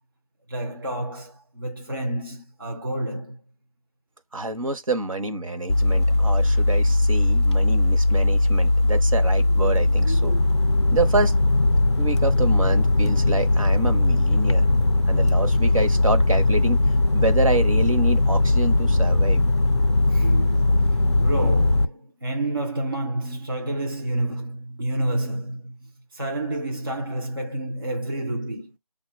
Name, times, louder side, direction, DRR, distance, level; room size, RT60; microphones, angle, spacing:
voice 1, 0.5-3.4 14.9-15.0 15.6-15.7 20.1-28.7, right 1 dB, 35° right, 0.5 m, -29 dB
voice 2, 4.3-10.3 10.9-11.3 12.0-14.6 15.1-16.8 17.1-19.4, right 2 dB, 60° right, 0.9 m, -27 dB
sound 1, 5.7-21.9, left 2 dB, 50° left, 0.4 m, -19 dB
5.3 x 2.2 x 4.3 m
figure-of-eight pair, 180°, 19 cm